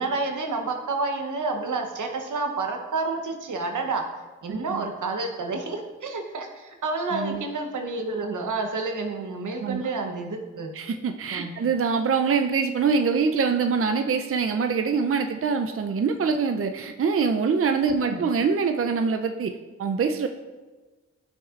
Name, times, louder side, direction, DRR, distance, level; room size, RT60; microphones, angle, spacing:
voice 1, 0.0-4.0 4.4-10.7 11.3-11.5 17.9-18.2, right 3 dB, 85° right, 4 dB, 0.9 m, -29 dB
voice 2, 4.5-4.8 7.1-7.4 9.6-9.8 10.7-19.5 19.8-20.3, right 5 dB, 50° right, 6 dB, 0.5 m, -24 dB
10.0 x 6.3 x 2.4 m, 1.3 s
cardioid pair, 40°, 30 cm